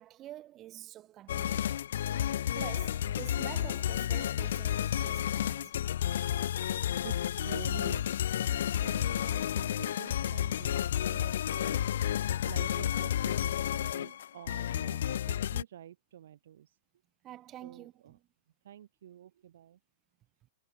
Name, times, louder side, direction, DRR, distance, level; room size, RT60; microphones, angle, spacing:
voice 1, 0.0-1.8 2.5-5.8 17.2-18.2, right 13 dB, 20° right, 2.6 m, -47 dB
sound 1, 1.3-15.6, left 10 dB, 60° left, 0.9 m, -31 dB
voice 2, 7.0-8.1 8.5-16.8 17.6-18.2 18.6-19.8, right 11 dB, 60° right, 7.0 m, -48 dB
hypercardioid pair, 165°, 0 cm